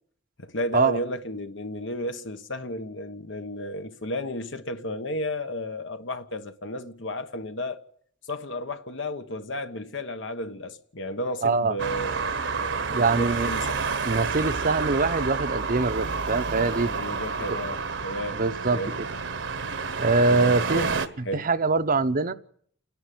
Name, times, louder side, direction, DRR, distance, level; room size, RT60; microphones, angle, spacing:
voice 1, 0.4-7.8 8.2-13.8 16.8-18.4 18.7-19.0 20.3-20.9 21.2-21.5, left 1 dB, 70° left, 1.4 m, -33 dB
voice 2, 11.4-11.7 12.9-13.5 14.1-16.9 18.3-18.8 20.0-20.9 21.3-22.3, right 3 dB, 45° right, 0.8 m, -23 dB
Traffic noise roadway noise, 11.8-21.1, right 5 dB, 70° right, 1.2 m, -29 dB
29.0 x 10.5 x 9.4 m
head